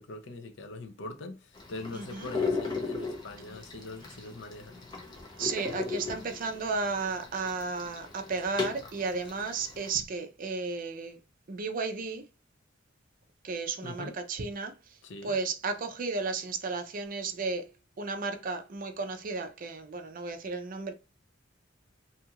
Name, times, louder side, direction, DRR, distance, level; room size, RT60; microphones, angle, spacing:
voice 1, 0.0-4.9 13.8-14.2 15.0-15.3, left 2 dB, 70° left, 0.5 m, -42 dB
sound 1, 1.5-10.0, left 4 dB, 25° left, 0.6 m, -37 dB
voice 2, 1.9-2.3 5.4-11.2 11.5-12.3 13.4-15.0 15.2-17.7 18.0-20.9, right 4 dB, 45° right, 0.5 m, -33 dB
2.8 x 2.3 x 2.8 m
head